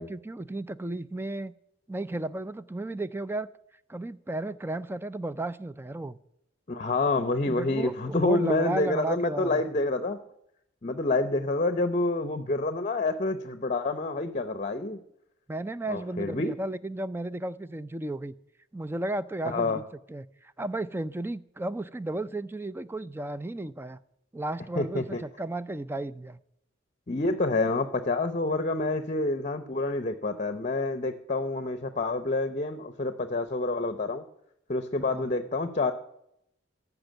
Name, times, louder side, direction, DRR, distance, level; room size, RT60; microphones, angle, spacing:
voice 1, 0.0-1.5 1.9-3.5 3.9-6.2 7.5-9.6 15.5-18.3 18.7-19.8 20.1-24.0 24.3-26.4 35.0-35.3, right 2 dB, 10° right, 15 dB, 0.4 m, -34 dB
voice 2, 6.7-10.2 10.8-15.0 15.9-16.5 19.4-19.8 24.8-25.2 27.1-34.2 34.7-35.9, left 2 dB, 35° left, 11 dB, 0.7 m, -28 dB
14.0 x 6.0 x 9.1 m, 0.77 s
head